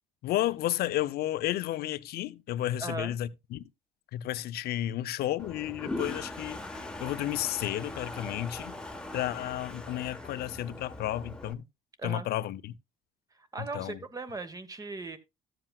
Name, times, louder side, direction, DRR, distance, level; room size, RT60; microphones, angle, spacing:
voice 1, 0.2-3.7 4.1-8.7 9.1-11.6 12.0-12.7 13.7-14.0, left 13 dB, 70° left, 0.6 m, -32 dB
voice 2, 2.8-3.2 12.0-12.3 13.3-15.2, right 3 dB, 20° right, 1.1 m, -38 dB
Toilet flush, 5.4-11.5, left 2 dB, 5° left, 1.1 m, -40 dB
13.5 x 7.6 x 2.3 m
cardioid pair, 110°, 17 cm